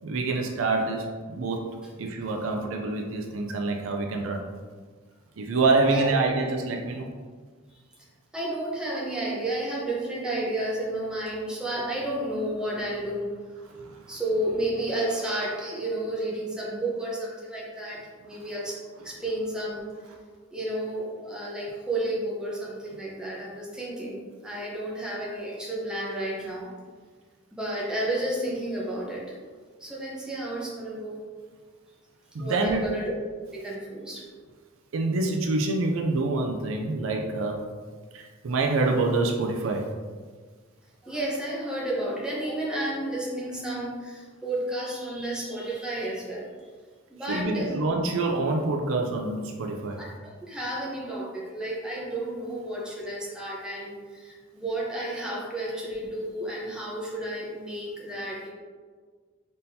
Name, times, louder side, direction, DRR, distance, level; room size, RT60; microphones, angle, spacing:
voice 1, 0.0-1.6 2.0-4.4 5.4-7.1 13.8-14.0 32.3-32.8 34.9-37.6 38.1-39.8 47.3-50.0, right 3 dB, 65° right, 2 dB, 0.4 m, -26 dB
voice 2, 5.8-6.2 7.7-7.8 8.3-13.3 14.1-18.8 19.0-19.9 20.5-26.7 27.5-29.2 29.8-31.2 32.4-33.1 33.5-34.2 41.0-46.5 47.1-47.8 50.0-58.5, right 1 dB, 5° right, -5 dB, 0.8 m, -31 dB
4.1 x 3.6 x 2.7 m, 1.5 s
head